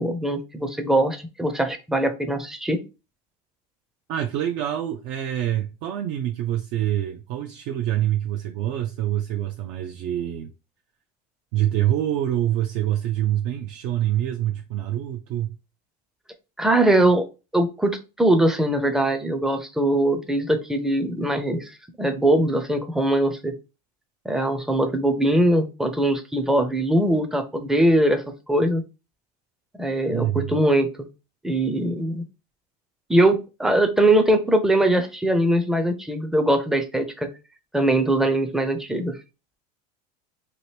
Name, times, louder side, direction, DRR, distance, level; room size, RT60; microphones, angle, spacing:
voice 1, 0.0-2.8 16.6-17.2 17.5-21.7 22.0-23.5 24.3-28.2 28.5-28.8 29.8-31.1 31.4-32.2 33.1-37.3 37.7-39.2, right 1 dB, ahead, 0.4 m, -21 dB
voice 2, 4.1-10.5 11.5-15.6 30.1-30.5, right 12 dB, 60° right, 0.4 m, -26 dB
2.9 x 2.5 x 3.2 m
supercardioid pair, 115°, 20 cm